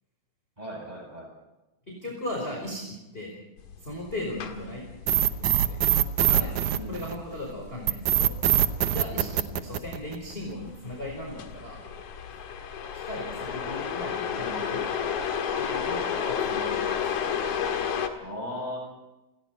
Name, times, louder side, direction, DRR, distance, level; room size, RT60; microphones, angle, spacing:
voice 1, 0.6-1.3 6.7-7.0 18.2-18.8, equal, 10° right, 0 dB, 7.9 m, -36 dB
voice 2, 1.9-3.3 3.8-4.8 5.1-5.9 6.2-6.5 6.9-8.3 8.9-11.8 13.0-14.8 15.6-17.0, left 1 dB, 15° left, -1 dB, 4.6 m, -37 dB
sound 1, 3.6-18.1, left 7 dB, 55° left, 2.6 m, -33 dB
sound 2, 5.1-7.3 7.9-10.3, right 12 dB, 80° right, 1.7 m, -23 dB
29.5 x 21.0 x 4.5 m, 1.0 s
omnidirectional pair, 4.8 m